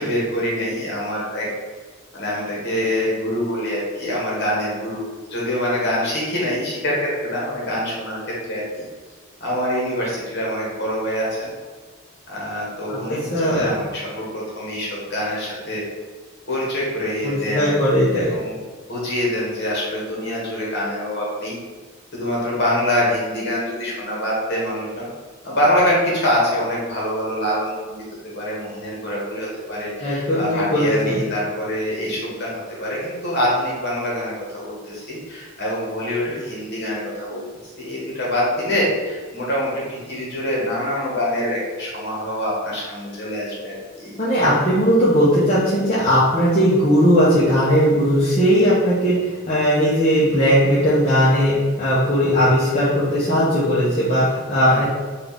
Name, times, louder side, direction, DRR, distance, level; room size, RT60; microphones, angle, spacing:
voice 1, 0.0-1.5 2.1-8.8 9.4-11.5 12.3-15.9 16.5-17.7 18.1-18.6 18.9-21.6 22.1-25.1 25.4-28.0 28.3-37.4 37.8-44.1 54.6-54.8, equal, 55° left, -4 dB, 1.3 m, -25 dB
voice 2, 12.9-13.7 17.2-18.3 30.0-31.2 44.2-54.8, equal, 30° left, -10 dB, 0.8 m, -18 dB
4.1 x 2.4 x 3.5 m, 1.4 s
head